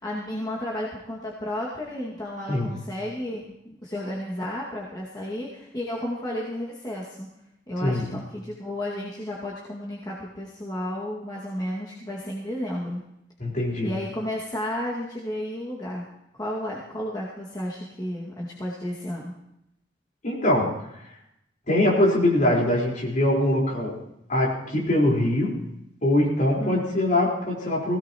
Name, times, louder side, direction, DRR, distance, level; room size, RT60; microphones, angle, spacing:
voice 1, 0.0-7.3 7.7-13.0 13.8-16.1 16.3-19.3 26.6-27.0, left 1 dB, 25° left, -6 dB, 2.1 m, -32 dB
voice 2, 13.4-13.9 20.2-20.7 21.7-23.9 24.3-25.5 26.0-28.0, left 1 dB, 45° left, -4 dB, 4.5 m, -22 dB
20.5 x 17.0 x 3.0 m, 0.80 s
head